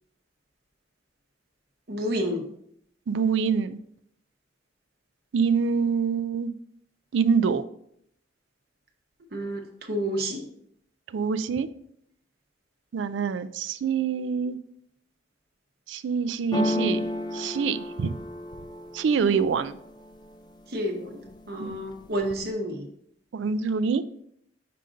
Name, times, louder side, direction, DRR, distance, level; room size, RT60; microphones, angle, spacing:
voice 1, 1.9-2.5 9.3-9.6 9.9-10.5 19.2-19.4 20.7-21.2 21.5-22.9, equal, 55° right, 3 dB, 0.9 m, -29 dB
voice 2, 3.1-3.8 5.3-6.5 7.1-7.6 11.1-11.7 12.9-14.6 15.9-17.1 17.3-18.2 18.9-19.8 21.6-21.8 23.3-24.0, right 6 dB, 80° right, 14 dB, 0.4 m, -25 dB
sound 1, 16.5-20.4 20.8-21.4 21.7-22.5, left 1 dB, 25° left, 0.4 m, -32 dB
5.6 x 3.8 x 5.1 m, 0.70 s
head